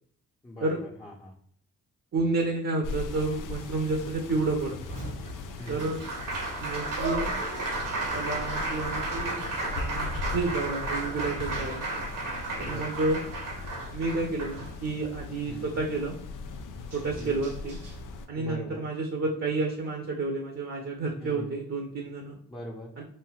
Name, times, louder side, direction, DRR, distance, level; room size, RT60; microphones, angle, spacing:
voice 1, 0.4-1.3 5.6-6.0 12.6-12.9 15.5-15.8 17.2-17.4 18.4-18.9 21.2-21.6 22.5-22.9, equal, 15° left, -3 dB, 0.7 m, -41 dB
voice 2, 2.1-4.8 5.7-6.0 6.6-7.4 8.1-9.4 9.7-11.8 12.6-13.2 13.9-16.2 16.9-17.8 18.3-22.4 23.0-23.1, right 3 dB, 40° right, 1 dB, 0.8 m, -30 dB
sound 1, 2.8-18.3, left 4 dB, 65° left, 0.5 m, -39 dB
Applause, 4.9-15.1 16.5-16.6 16.9-17.9, right 2 dB, 65° right, 1.2 m, -34 dB
3.2 x 2.5 x 2.3 m, 0.63 s
supercardioid pair, 45°, 34 cm